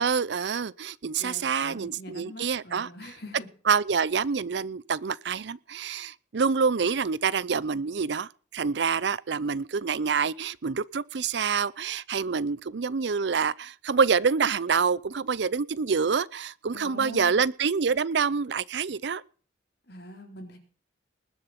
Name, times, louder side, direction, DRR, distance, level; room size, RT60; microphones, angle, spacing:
voice 1, 0.0-2.9 3.7-19.2, right 5 dB, 65° right, 0.5 m, -27 dB
voice 2, 1.2-3.5 16.7-17.4 19.9-20.6, left 1 dB, 60° left, 4.0 m, -43 dB
20.0 x 7.3 x 5.8 m
head